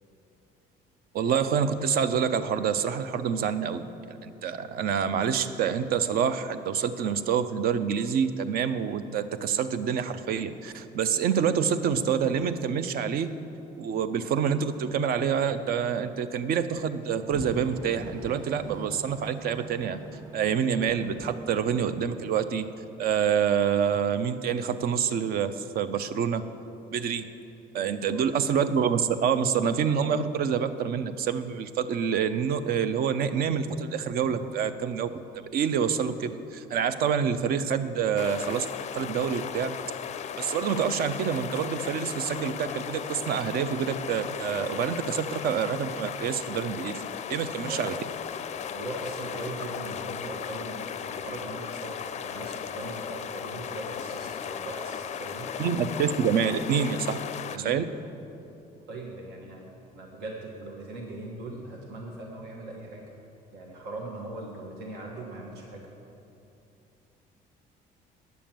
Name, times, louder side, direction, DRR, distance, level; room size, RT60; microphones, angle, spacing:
voice 1, 1.1-13.3 13.8-20.0 20.3-22.7 23.0-26.5 26.9-27.3 27.7-35.1 35.4-38.7 38.9-39.7 40.4-47.9 55.6-57.2 57.5-57.8, right 7 dB, 65° right, 11 dB, 0.6 m, -27 dB
sound 1, 17.3-23.0, right 2 dB, 25° right, 1.3 m, -43 dB
voice 2, 27.7-28.2 47.7-47.9 48.7-55.5 57.5-57.9 58.9-63.0 63.5-65.9, right 2 dB, 85° right, -1 dB, 1.4 m, -40 dB
sound 2, 38.2-57.6, left 8 dB, 40° left, 0.4 m, -36 dB
9.4 x 7.0 x 7.5 m, 2.8 s
cardioid pair, 110°, 17 cm